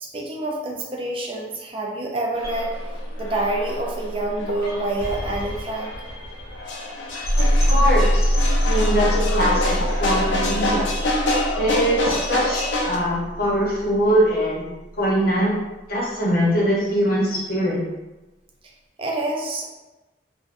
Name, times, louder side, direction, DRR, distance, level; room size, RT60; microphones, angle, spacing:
voice 1, 0.0-2.7 3.2-5.9 19.0-19.7, right 2 dB, 30° right, 0 dB, 0.3 m, -27 dB
sound 1, 2.4-13.0, left 1 dB, 85° left, 0.5 m, -27 dB
sound 2, 2.4-14.4, equal, 15° left, 1.0 m, -24 dB
voice 2, 7.4-8.3 8.6-10.9 11.6-14.6 14.9-15.5 15.9-17.8, equal, 55° left, -5 dB, 0.9 m, -22 dB
3.4 x 2.3 x 2.5 m, 1.1 s
head